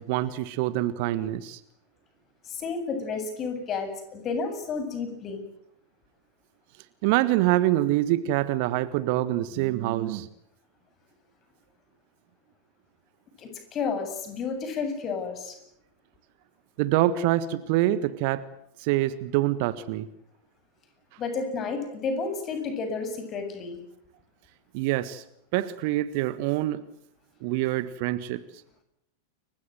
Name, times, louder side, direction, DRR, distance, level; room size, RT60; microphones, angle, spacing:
voice 1, 0.0-1.6 7.0-10.3 16.8-18.4 18.8-20.1 24.7-25.2 25.5-26.8 27.4-28.4, right 15 dB, 45° right, 16 dB, 1.4 m, -25 dB
voice 2, 2.5-5.4 13.4-15.6 21.2-23.8, left 4 dB, 30° left, 8 dB, 7.9 m, -31 dB
29.5 x 24.0 x 7.9 m, 0.76 s
figure-of-eight pair, 90°, 0 cm